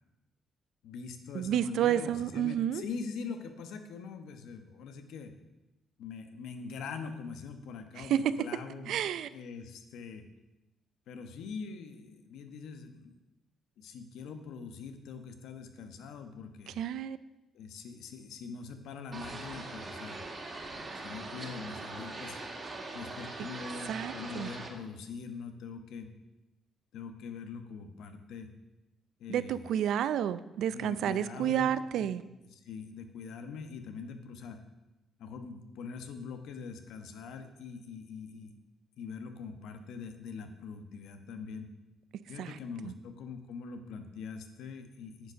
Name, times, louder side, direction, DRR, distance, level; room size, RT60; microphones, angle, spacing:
voice 1, 0.8-5.3 6.0-8.9 9.3-10.2 11.1-13.1 13.8-16.8 17.5-20.3 20.7-22.4 22.9-26.1 26.9-28.5 29.2-29.7 30.2-30.3 30.7-32.1 32.4-34.6 35.2-38.5 39.0-41.7 42.3-45.3, left 5 dB, 85° left, 7 dB, 1.1 m, -43 dB
voice 2, 1.3-2.8 8.0-8.2 8.9-9.3 16.8-17.2 23.9-24.5 29.3-32.2 42.4-42.6 42.8-42.9, right 10 dB, 75° right, 15 dB, 0.5 m, -30 dB
sound 1, 19.1-24.7, right 2 dB, 35° right, 2.4 m, -42 dB
9.7 x 6.9 x 6.3 m, 0.98 s
cardioid pair, 90°, 0 cm